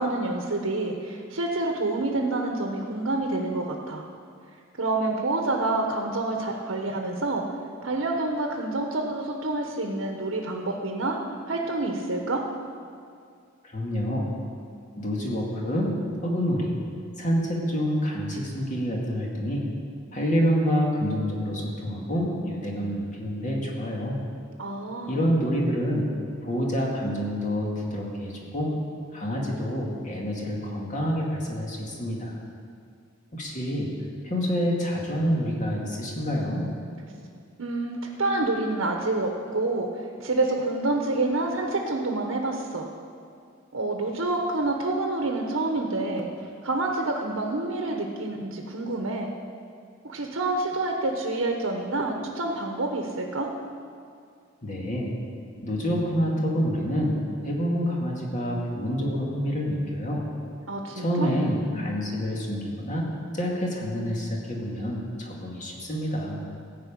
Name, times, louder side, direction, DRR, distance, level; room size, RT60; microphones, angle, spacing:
voice 1, 0.0-4.0 4.8-7.4 7.8-11.2 11.5-12.4 24.6-25.3 37.6-39.9 40.2-42.8 43.7-46.3 46.6-49.3 50.0-53.5 60.7-61.3, right 2 dB, 75° right, 2 dB, 1.1 m, -28 dB
voice 2, 13.7-14.3 15.0-15.9 16.2-16.7 17.2-19.7 20.1-24.2 25.1-26.0 26.4-28.7 29.1-32.4 33.3-33.9 34.2-36.6 54.6-55.1 55.6-60.2 61.0-63.1 63.3-66.4, equal, 40° left, -2 dB, 2.1 m, -27 dB
15.0 x 5.5 x 8.6 m, 2.3 s
head